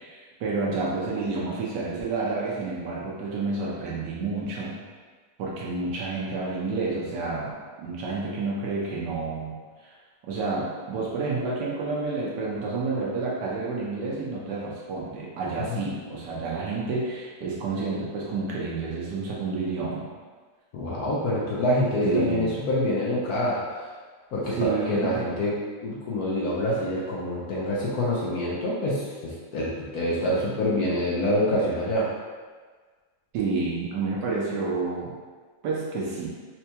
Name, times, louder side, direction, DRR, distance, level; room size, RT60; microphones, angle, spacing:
voice 1, 0.0-4.7 5.4-9.5 9.8-9.9 10.2-20.1 22.0-22.5 24.5-25.2 33.3-35.1 35.6-36.3, right 3 dB, 70° right, -5 dB, 1.3 m, -29 dB
voice 2, 20.7-23.6 24.3-32.1, left 1 dB, 65° left, -6 dB, 1.0 m, -26 dB
4.4 x 2.2 x 2.8 m, 1.5 s
omnidirectional pair, 1.9 m